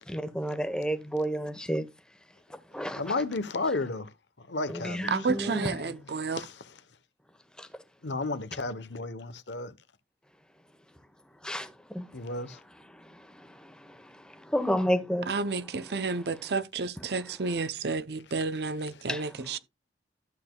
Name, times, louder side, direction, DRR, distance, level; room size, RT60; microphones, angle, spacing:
voice 1, 0.1-1.8 2.7-3.1 4.7-5.8 7.6-7.7 11.4-12.2 12.9-16.4 17.0-17.6 19.1-19.6, equal, 5° left, 1.1 m, -33 dB
voice 2, 3.0-6.8 8.0-9.7 12.1-12.6 18.9-19.0, left 3 dB, 85° left, 1.0 m, -34 dB
voice 3, 5.1-6.4 15.3-19.6, right 4 dB, 65° right, 0.7 m, -31 dB
12.5 x 8.1 x 2.3 m
head